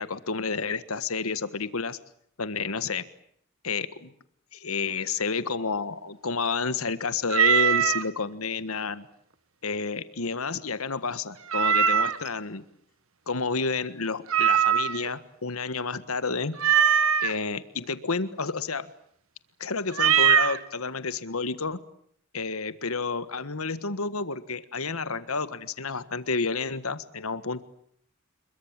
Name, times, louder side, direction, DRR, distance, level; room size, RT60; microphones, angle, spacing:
voice 1, 0.0-2.0 2.4-3.0 3.6-4.1 4.5-9.1 9.6-12.6 13.3-16.5 17.2-18.9 19.6-21.8 22.3-27.6, left 4 dB, 80° left, 13 dB, 1.6 m, -30 dB
Meow, 7.3-8.0 11.5-12.3 14.3-15.1 16.6-17.3 19.9-20.6, right 8 dB, 70° right, 1.5 m, -21 dB
27.5 x 22.5 x 8.9 m, 0.69 s
head